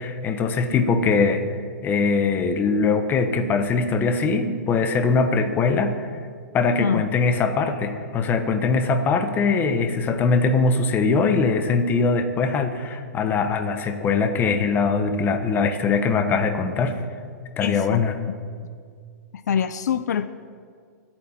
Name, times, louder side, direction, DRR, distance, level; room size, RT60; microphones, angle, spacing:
voice 1, 0.0-1.6 1.8-6.1 6.5-17.0 17.6-18.2, left 4 dB, 20° left, 8 dB, 1.2 m, -22 dB
voice 2, 17.6-18.0 19.5-20.3, left 8 dB, 75° left, 12 dB, 0.7 m, -24 dB
26.5 x 8.9 x 4.5 m, 2.1 s
hypercardioid pair, 145°, 9 cm